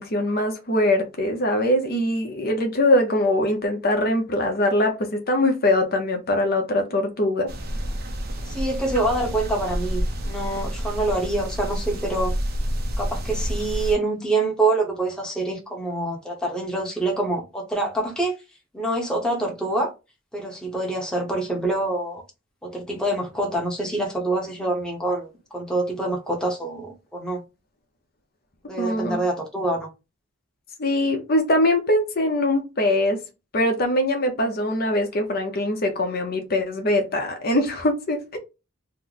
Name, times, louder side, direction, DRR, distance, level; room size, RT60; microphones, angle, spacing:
voice 1, 0.0-7.5 28.8-29.2 30.8-33.2 33.5-38.4, left 1 dB, 50° left, 0.8 m, -22 dB
sound 1, 7.5-14.0, equal, 50° right, 0.6 m, -29 dB
voice 2, 8.5-12.3 13.0-18.3 18.7-19.9 20.3-22.2 22.6-27.4 28.7-29.9, right 2 dB, 5° left, 0.9 m, -26 dB
3.1 x 2.1 x 3.8 m
head